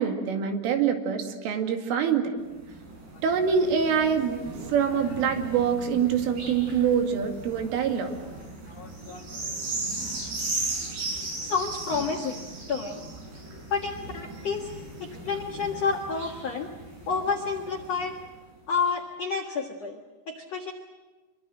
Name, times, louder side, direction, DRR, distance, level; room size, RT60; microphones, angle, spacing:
voice 1, 0.0-2.4 3.2-4.4 4.7-8.1, right 7 dB, 75° right, 5 dB, 4.7 m, -25 dB
sound 1, 2.4-18.2 18.9-19.0, right 2 dB, 50° right, 8.4 m, -37 dB
voice 2, 8.7-9.3 11.4-12.4 12.7-13.1 13.7-14.7 15.0-16.7 17.1-18.2 18.7-20.0 20.3-20.7, left 5 dB, 80° left, 2 dB, 1.4 m, -30 dB
26.0 x 24.0 x 7.7 m, 1.3 s
omnidirectional pair, 5.8 m